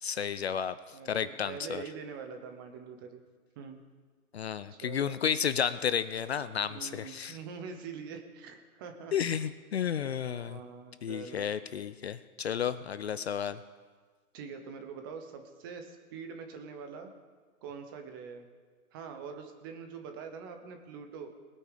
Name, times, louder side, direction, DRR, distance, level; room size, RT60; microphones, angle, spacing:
voice 1, 0.0-0.7 1.1-1.8 4.3-7.4 9.1-10.6 11.0-13.6, left 8 dB, 45° left, 14 dB, 0.5 m, -32 dB
voice 2, 0.9-3.2 3.6-3.8 4.7-5.2 6.7-9.3 9.8-11.5 14.3-17.1 17.6-18.5 18.9-21.3, right 6 dB, 15° right, 7 dB, 0.7 m, -44 dB
20.5 x 8.6 x 5.0 m, 1.5 s
hypercardioid pair, 150°, 44 cm